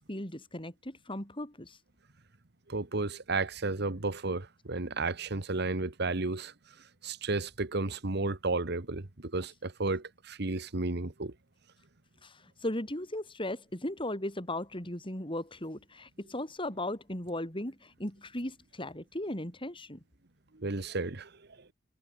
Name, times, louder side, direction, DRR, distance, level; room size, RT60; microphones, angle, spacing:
voice 1, 0.1-1.8 12.2-20.0, left 1 dB, 30° left, 7.5 m, -37 dB
voice 2, 2.7-6.5 7.0-11.3 20.5-21.3, right 3 dB, 60° right, 1.5 m, -33 dB
head